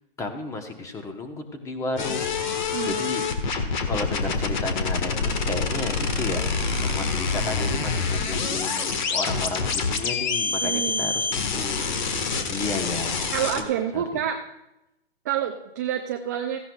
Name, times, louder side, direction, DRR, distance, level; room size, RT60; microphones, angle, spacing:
voice 1, 0.2-2.5 2.8-3.3 3.9-11.8 12.5-13.3 13.6-14.0, left 3 dB, 10° left, 6 dB, 1.0 m, -33 dB
sound 1, 2.0-13.6, left 4 dB, 50° left, 1.5 m, -26 dB
voice 2, 2.7-3.1 10.6-11.2 13.3-14.4 15.2-16.6, right 9 dB, 20° right, 4 dB, 0.4 m, -28 dB
17.0 x 15.5 x 2.3 m, 0.91 s
hypercardioid pair, 140°, 30 cm